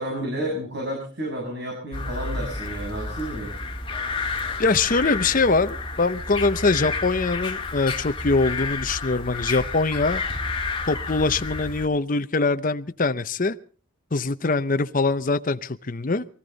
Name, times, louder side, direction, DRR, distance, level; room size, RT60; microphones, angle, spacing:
voice 1, 0.0-3.5, right 1 dB, 60° right, -2 dB, 7.3 m, -31 dB
sound 1, 1.9-11.9, left 3 dB, 25° left, 1.9 m, -30 dB
voice 2, 4.6-10.2 10.9-13.6 14.1-16.3, left 3 dB, 40° left, 10 dB, 0.8 m, -23 dB
24.0 x 15.0 x 4.0 m, 0.41 s
head